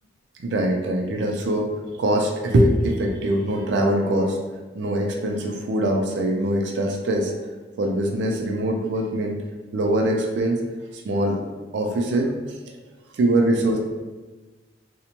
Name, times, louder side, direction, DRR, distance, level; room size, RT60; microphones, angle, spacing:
voice 1, 0.4-1.7 2.0-4.4 4.7-7.4 7.8-9.4 9.7-10.6 10.9-11.4 11.7-12.3 13.1-13.8, right 1 dB, 75° right, 2 dB, 0.3 m, -22 dB
2.7 x 2.1 x 2.8 m, 1.2 s
head